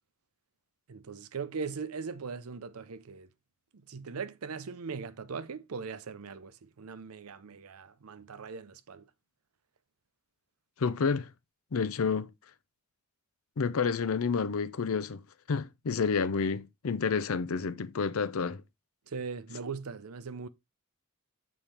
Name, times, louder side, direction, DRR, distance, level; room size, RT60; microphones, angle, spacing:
voice 1, 0.9-3.3 3.7-9.1 19.1-20.5, right 5 dB, 85° right, 0.6 m, -40 dB
voice 2, 10.8-11.3 11.7-12.3 13.6-18.6, left 5 dB, 70° left, 0.5 m, -29 dB
7.2 x 4.3 x 3.3 m
head